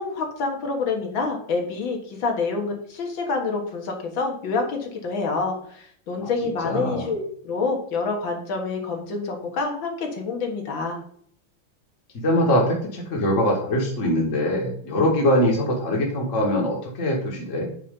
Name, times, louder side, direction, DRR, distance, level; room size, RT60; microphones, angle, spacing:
voice 1, 0.0-11.0, left 4 dB, 65° left, 2 dB, 2.2 m, -27 dB
voice 2, 6.6-7.1 12.1-17.7, left 1 dB, 40° left, -2 dB, 1.7 m, -22 dB
8.5 x 4.2 x 5.2 m, 0.62 s
omnidirectional pair, 2.4 m